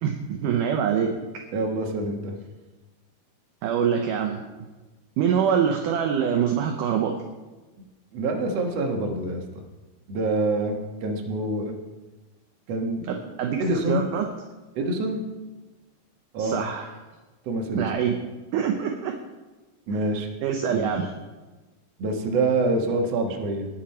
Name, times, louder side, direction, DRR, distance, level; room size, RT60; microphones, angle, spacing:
voice 1, 0.0-1.2 3.6-4.4 5.2-7.1 13.1-14.3 16.4-16.9 17.8-18.2 18.5-19.1 20.4-21.1, right 8 dB, 75° right, 4 dB, 2.0 m, -24 dB
voice 2, 1.5-2.3 8.1-9.4 10.1-11.7 12.7-13.1 13.6-14.0 14.8-15.2 16.3-16.6 17.5-17.9 19.9-20.3 20.7-21.0 22.0-23.7, right 2 dB, 55° right, 2 dB, 1.9 m, -26 dB
19.5 x 7.3 x 4.4 m, 1.2 s
omnidirectional pair, 4.5 m